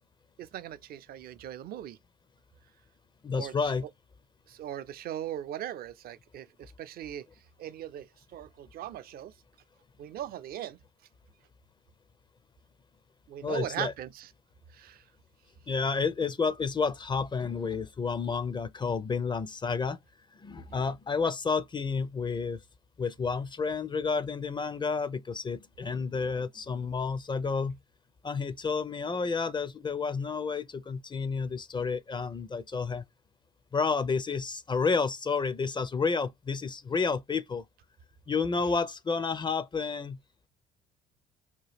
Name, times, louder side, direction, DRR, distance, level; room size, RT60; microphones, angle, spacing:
voice 1, 0.4-2.0 3.4-3.5 4.5-7.3 7.6-9.3 10.0-10.8 13.3-14.3 14.7-15.0, right 11 dB, 50° right, 0.4 m, -39 dB
voice 2, 3.2-3.9 13.4-13.9 15.7-20.0 20.3-22.6 23.0-27.8 28.2-33.0 33.7-37.6 38.3-40.2, left 5 dB, 20° left, 0.4 m, -30 dB
2.8 x 2.3 x 3.3 m
hypercardioid pair, 55°, 20 cm